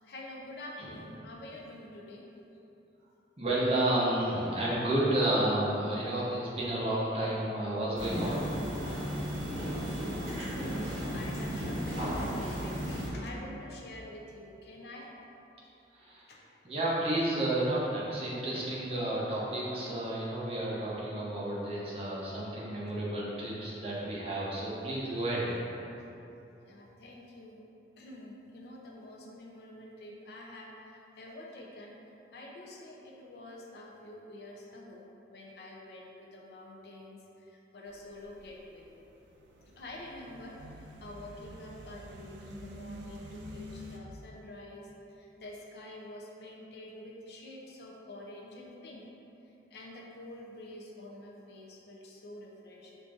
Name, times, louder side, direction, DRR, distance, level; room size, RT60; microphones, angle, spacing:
voice 1, 0.0-2.2 9.9-15.1 16.3-16.5 26.7-27.6 28.0-32.0 32.3-38.9 39.8-49.0 49.7-53.0, left 1 dB, 60° left, -2 dB, 0.4 m, -47 dB
voice 2, 3.4-8.5 15.9-16.2 16.6-25.6, right 1 dB, 30° right, -7 dB, 0.7 m, -31 dB
sound 1, 8.0-13.1, equal, 50° right, 1.1 m, -34 dB
sound 2, 37.9-44.0, equal, 75° right, 0.3 m, -48 dB
4.9 x 2.5 x 2.4 m, 2.9 s
head